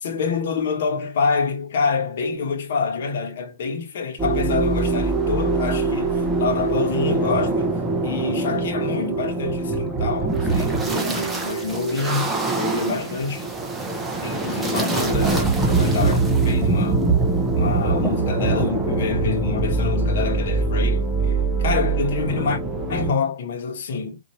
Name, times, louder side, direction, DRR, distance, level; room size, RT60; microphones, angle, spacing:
voice 1, 0.0-7.7 8.0-13.5 14.2-17.0 17.5-22.6 22.9-24.2, left 5 dB, 55° left, 1.1 m, -27 dB
sound 1, 4.2-23.1, right 3 dB, 5° right, 0.8 m, -23 dB
4.4 x 2.7 x 3.1 m
hypercardioid pair, 160°, 0 cm